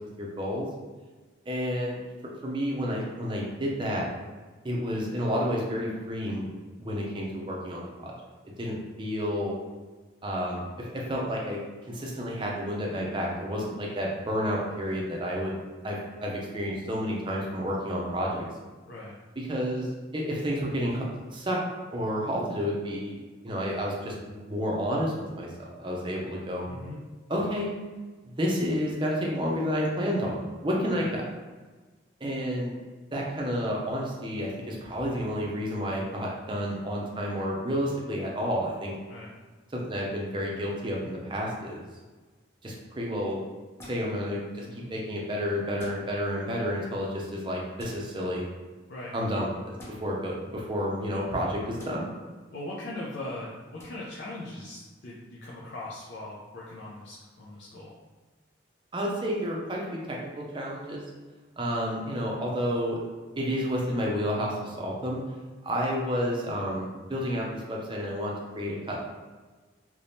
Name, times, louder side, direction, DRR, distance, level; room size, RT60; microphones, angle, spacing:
voice 1, 0.2-0.7 1.5-2.0 2.4-4.1 4.6-6.5 6.8-8.1 8.6-9.5 10.2-11.6 11.9-15.6 15.8-18.4 19.4-21.0 21.3-21.6 21.9-26.7 27.3-27.7 28.4-31.2 32.2-32.7 33.1-38.9 39.7-41.9 42.6-43.4 43.8-48.4 49.1-52.0 58.9-61.0 61.6-63.0 63.4-65.2 65.6-69.0, equal, 25° right, -2 dB, 0.5 m, -30 dB
voice 2, 26.7-27.0 30.9-31.0 39.1-39.3 44.6-44.9 48.9-49.1 52.5-57.9, left 1 dB, 60° left, -6 dB, 0.5 m, -40 dB
sound 1, 43.8-44.0 45.8-46.0 47.8-48.0 49.8-49.9 51.8-51.9 53.8-53.9, left 1 dB, 15° left, 0.6 m, -46 dB
3.5 x 2.9 x 2.7 m, 1.4 s
head